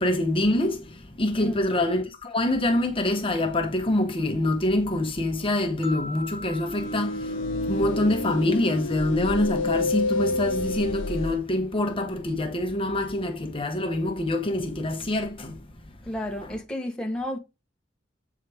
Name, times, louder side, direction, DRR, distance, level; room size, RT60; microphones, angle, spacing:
voice 1, 0.0-7.4 7.7-15.6, left 1 dB, 30° left, 1.0 m, -25 dB
sound 1, 5.8-8.9, left 1 dB, 65° right, 1.7 m, -42 dB
sound 2, 6.7-11.4, left 2 dB, 75° left, 0.7 m, -28 dB
voice 2, 16.0-17.4, left 1 dB, 5° left, 1.1 m, -31 dB
8.1 x 4.7 x 3.5 m
head